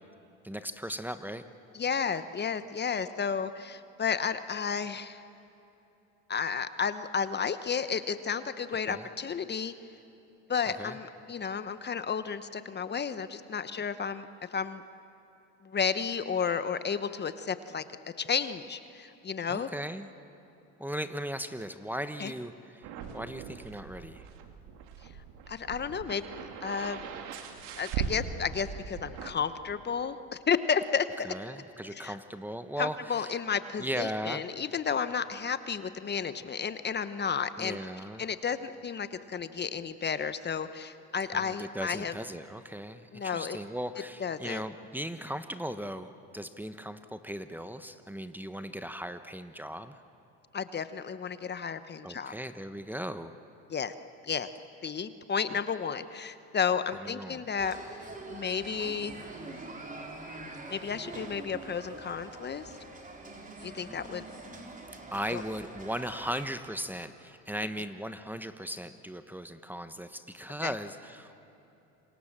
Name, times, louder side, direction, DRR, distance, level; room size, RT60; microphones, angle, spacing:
voice 1, 0.4-1.4 8.7-9.1 10.8-11.0 19.5-20.1 20.8-22.8 23.1-24.3 31.2-33.4 33.8-34.4 37.6-38.2 41.3-50.0 52.0-53.4 57.0-57.4 65.1-71.4, equal, 5° right, 10 dB, 1.1 m, -38 dB
voice 2, 1.7-5.2 6.3-9.7 10.5-14.8 15.6-17.8 18.2-19.7 22.2-22.3 25.5-27.0 27.8-31.3 31.9-32.2 32.8-37.8 38.2-42.1 43.1-43.6 44.2-44.6 50.5-52.3 53.7-53.9 54.2-54.5 54.8-57.8 58.3-59.1 60.7-62.7 63.6-64.2 65.3-65.4 70.6-70.7, left 6 dB, 30° left, 12 dB, 1.1 m, -32 dB
sound 1, 22.8-29.3, right 7 dB, 80° right, 2.3 m, -40 dB
sound 2, 57.6-66.5, right 2 dB, 25° right, 4.1 m, -44 dB
27.5 x 26.0 x 7.5 m, 2.9 s
supercardioid pair, 90°, 33 cm